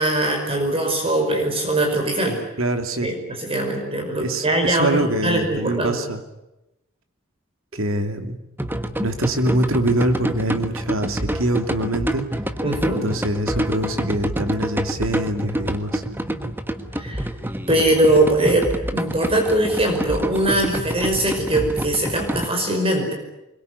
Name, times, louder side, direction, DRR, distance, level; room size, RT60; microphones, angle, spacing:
voice 1, 0.0-2.4 3.0-6.0 12.6-13.0 16.9-17.3 17.7-23.1, right 1 dB, 25° right, 3 dB, 5.3 m, -21 dB
voice 2, 2.6-3.1 4.2-6.2 7.7-8.4 9.0-12.3 12.9-16.0, right 1 dB, 75° right, 7 dB, 2.8 m, -24 dB
sound 1, 8.6-22.5, right 1 dB, 10° right, 1.4 m, -27 dB
25.0 x 22.5 x 9.7 m, 0.93 s
head